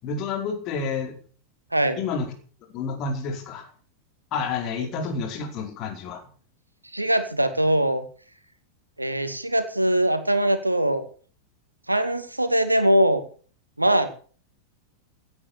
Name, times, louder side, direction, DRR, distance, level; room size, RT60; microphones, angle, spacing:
voice 1, 0.0-1.2 2.0-2.3 2.7-3.7 4.3-6.2, left 5 dB, 40° left, 4 dB, 4.9 m, -29 dB
voice 2, 6.9-8.0 9.0-11.1 11.9-13.2 13.8-14.1, right 1 dB, 85° right, 9 dB, 2.3 m, -22 dB
17.0 x 9.8 x 7.2 m, 0.43 s
figure-of-eight pair, 90°, 0 cm